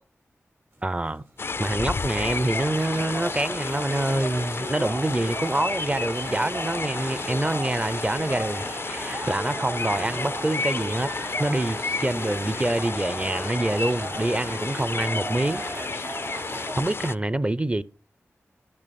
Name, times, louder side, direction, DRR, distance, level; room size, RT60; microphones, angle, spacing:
sound 1, 0.7-8.8, right 1 dB, 75° right, 6.5 m, -57 dB
voice 1, 0.8-1.2 1.6-11.1 11.4-15.6 16.8-17.8, right 1 dB, 25° right, 0.5 m, -26 dB
sound 2, 1.4-17.2, left 4 dB, 50° left, 0.3 m, -32 dB
sound 3, 2.1-16.8, right 2 dB, 50° right, 1.7 m, -36 dB
12.0 x 6.2 x 4.2 m
cardioid pair, 50°, 5 cm